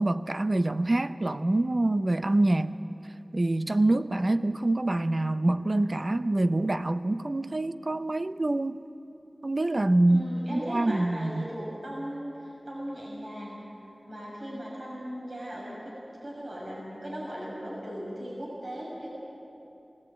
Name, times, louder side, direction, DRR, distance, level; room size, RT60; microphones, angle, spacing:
voice 1, 0.0-2.8 3.3-8.8 9.4-11.5, right 2 dB, 50° right, 11 dB, 0.7 m, -26 dB
voice 2, 10.1-13.6 14.1-15.9 16.2-19.1, equal, 70° right, -5 dB, 6.2 m, -38 dB
20.5 x 18.0 x 8.8 m, 2.9 s
wide cardioid pair, 45°, 0 cm